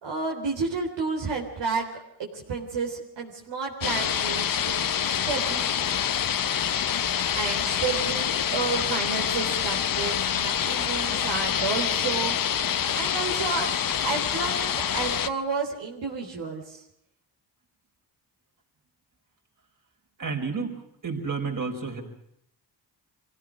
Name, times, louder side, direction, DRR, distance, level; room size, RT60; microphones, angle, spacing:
voice 1, 0.0-2.0 2.3-4.9 5.3-6.0 7.2-13.7 14.0-16.8, right 4 dB, 80° right, -1 dB, 3.9 m, -31 dB
sound 1, 3.8-15.3, left 9 dB, 50° left, 1.0 m, -26 dB
voice 2, 20.2-22.0, right 4 dB, 45° right, 2 dB, 5.5 m, -31 dB
25.5 x 16.5 x 6.4 m, 0.76 s
cardioid pair, 70°, 43 cm